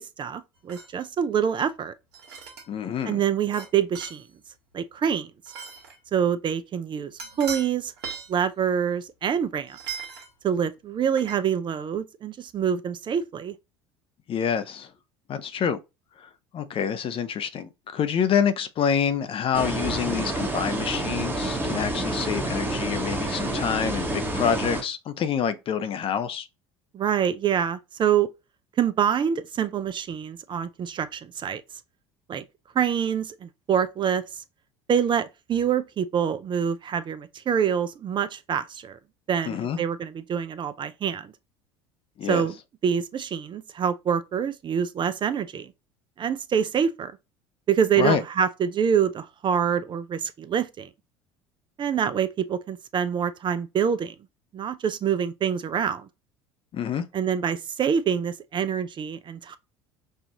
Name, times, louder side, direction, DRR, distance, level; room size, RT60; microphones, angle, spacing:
voice 1, 0.0-1.9 3.1-4.2 4.7-5.3 6.1-7.1 7.4-7.9 8.3-9.8 10.4-13.5 26.9-28.3 28.8-31.6 32.3-32.4 32.7-34.2 34.9-39.0 39.3-41.3 42.3-42.5 42.8-45.7 46.2-47.1 47.7-50.9 51.8-54.1 54.5-56.1 57.1-59.6, right 8 dB, 35° right, 0.5 m, -26 dB
sound 1, 0.7-1.0 2.1-2.7 3.5-3.7 3.9-4.3 5.5-6.0 7.2-7.7 8.0-8.3 9.7-10.3 11.1-11.4, right 6 dB, 75° right, 1.3 m, -38 dB
voice 2, 2.7-3.2 14.3-14.9 15.3-15.8 16.2-26.5 39.5-39.8 42.2-42.4 48.0-48.2 56.7-57.1, left 7 dB, 40° left, 0.6 m, -27 dB
sound 2, 19.5-24.8, right 1 dB, 15° right, 1.2 m, -28 dB
5.4 x 2.5 x 2.9 m
hypercardioid pair, 75°, 14 cm